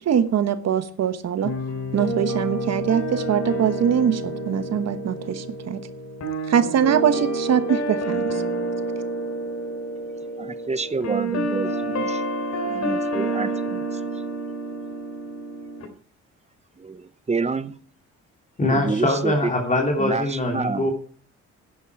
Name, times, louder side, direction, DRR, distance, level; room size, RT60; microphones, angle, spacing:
voice 1, 0.0-1.5 1.9-5.8 6.5-8.4, right 8 dB, 60° right, 1.2 m, -22 dB
sound 1, 1.4-15.9, right 1 dB, 60° left, 3.5 m, -28 dB
voice 2, 10.4-12.2 12.7-14.0 16.8-17.7 18.7-19.5 20.0-20.9, right 4 dB, 20° right, 0.8 m, -28 dB
voice 3, 18.6-20.9, left 1 dB, 25° left, 2.9 m, -23 dB
11.0 x 10.0 x 4.7 m
cardioid pair, 90°, 30 cm